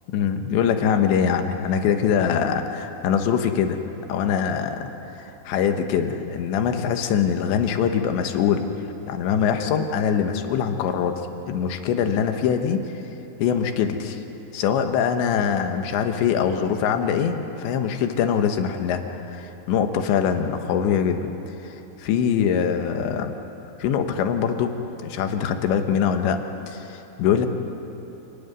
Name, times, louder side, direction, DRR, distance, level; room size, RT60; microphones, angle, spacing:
voice 1, 0.1-3.8 4.1-4.9 5.2-8.7 9.0-11.2 11.5-12.8 13.4-14.2 14.5-21.3 21.6-21.7 22.0-23.4 23.8-26.4 26.7-27.5, left 7 dB, 75° left, 6 dB, 3.4 m, -23 dB
28.5 x 19.0 x 9.6 m, 3.0 s
omnidirectional pair, 5.6 m